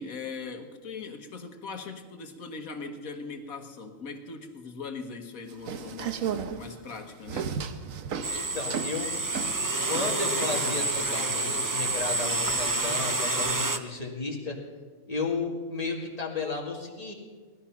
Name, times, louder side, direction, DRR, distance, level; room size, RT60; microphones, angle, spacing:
voice 1, 0.0-6.3 6.6-7.5, left 4 dB, 75° left, 5 dB, 1.8 m, -40 dB
sound 1, 5.5-10.9, right 7 dB, 70° right, 1.3 m, -35 dB
sound 2, 8.2-13.8, right 2 dB, 25° right, 0.4 m, -28 dB
voice 2, 8.3-9.1 9.4-9.6 9.8-14.6 15.1-17.1, left 4 dB, 25° left, 0 dB, 2.2 m, -33 dB
19.0 x 12.0 x 5.8 m, 1.4 s
omnidirectional pair, 1.5 m